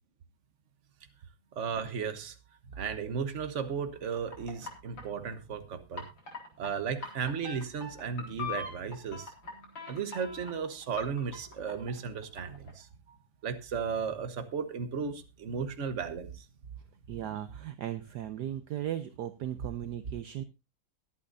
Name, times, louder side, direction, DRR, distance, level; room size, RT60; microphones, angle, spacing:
voice 1, 1.5-2.4 2.7-6.0 6.6-9.3 9.9-13.2 13.4-16.5, right 6 dB, 45° right, 9 dB, 1.4 m, -35 dB
sound 1, 4.0-5.3 5.9-6.7 7.0-12.7, left 4 dB, 85° left, 4.8 m, -42 dB
voice 2, 17.1-20.4, right 11 dB, 65° right, 10 dB, 1.2 m, -37 dB
22.0 x 8.7 x 2.7 m, 0.26 s
omnidirectional pair, 2.0 m